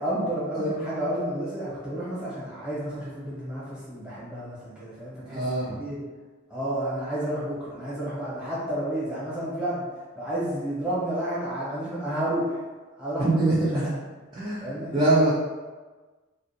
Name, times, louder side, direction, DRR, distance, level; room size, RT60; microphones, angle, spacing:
voice 1, 0.0-5.4 5.8-6.0 6.5-9.9 10.1-12.6 13.0-13.4 13.7-13.8 14.6-15.0, right 1 dB, 5° right, -10 dB, 0.9 m, -31 dB
voice 2, 0.5-0.9 5.3-5.8 13.2-13.9 14.3-15.3, right 2 dB, 20° right, -9 dB, 0.4 m, -24 dB
2.3 x 2.2 x 2.6 m, 1.3 s
head